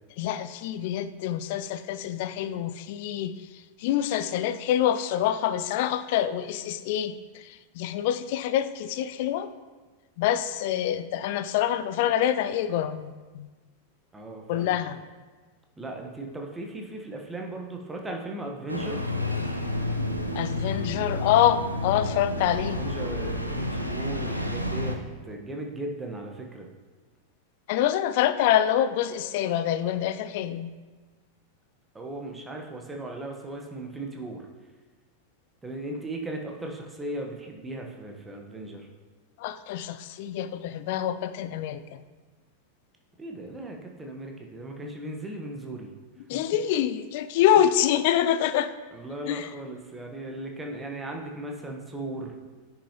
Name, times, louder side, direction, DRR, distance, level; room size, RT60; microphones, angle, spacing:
voice 1, 0.2-3.3 3.8-7.1 7.8-9.5 10.2-13.4 14.5-15.0 20.3-22.8 27.7-30.7 39.4-41.8 46.3-48.7 49.3-49.5, left 11 dB, 50° left, 12 dB, 0.4 m, -26 dB
voice 2, 14.1-14.8 15.8-19.0 22.4-25.0 25.2-26.7 31.9-34.5 35.6-38.9 43.2-45.9 46.3-46.4 48.9-52.3, right 2 dB, 10° right, 2 dB, 1.1 m, -37 dB
Engine starting, 18.7-25.0, left 1 dB, 90° right, 0.6 m, -30 dB
9.9 x 5.7 x 2.9 m, 1.3 s
figure-of-eight pair, 90°, 0 cm